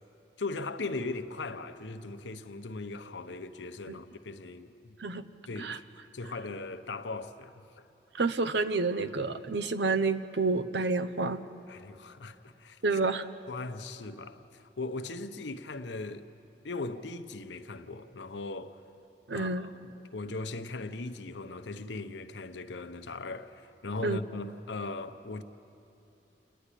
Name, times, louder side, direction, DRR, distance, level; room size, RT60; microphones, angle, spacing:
voice 1, 0.4-5.0 5.5-5.8 6.1-7.9 11.7-12.8 13.5-16.3 16.6-18.8 19.3-25.4, left 3 dB, 90° left, 0.9 m, -39 dB
voice 2, 8.2-11.4 12.8-13.2 19.3-19.7 24.0-24.2, right 3 dB, 75° right, 0.8 m, -29 dB
28.5 x 10.0 x 10.0 m
head